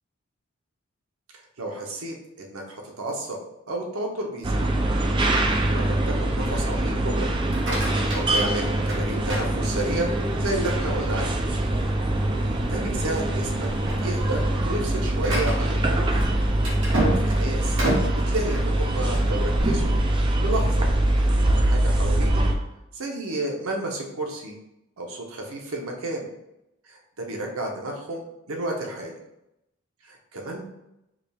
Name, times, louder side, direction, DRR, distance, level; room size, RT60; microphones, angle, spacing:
voice 1, 1.3-3.4 3.7-4.7 5.7-7.3 8.1-11.4 12.7-13.7 14.0-16.0 17.2-17.8 18.1-20.0 20.4-20.9 21.5-22.5 22.9-24.5 25.0-26.3 26.9-29.1 30.0-30.6, right 1 dB, 90° right, 1 dB, 0.8 m, -31 dB
sound 1, 4.4-22.5, right 1 dB, 25° right, 0.3 m, -23 dB
sound 2, 7.3-10.2 10.7-11.1 11.6-11.7 12.1-12.3 12.9-13.2 13.5-19.4, right 1 dB, 65° right, 1.4 m, -31 dB
4.9 x 2.3 x 3.3 m, 0.87 s
head